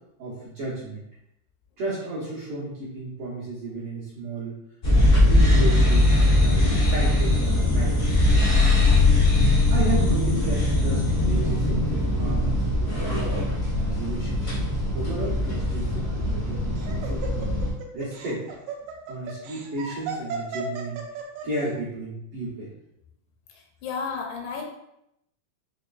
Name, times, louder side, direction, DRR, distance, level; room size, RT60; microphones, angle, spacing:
voice 1, 0.2-1.1 1.8-4.6 4.9-6.1 6.4-8.2 9.4-13.4 13.7-17.5 17.9-18.4 19.1-21.0 21.4-22.7, right 2 dB, 60° right, -9 dB, 1.6 m, -33 dB
sound 1, 4.8-17.7, left 2 dB, 55° left, 0.6 m, -21 dB
Laughter, 16.2-21.6, right 5 dB, 80° right, 1.9 m, -35 dB
voice 2, 23.8-24.6, left 5 dB, 80° left, 0 dB, 2.1 m, -31 dB
5.0 x 2.9 x 2.4 m, 0.81 s
omnidirectional pair, 3.6 m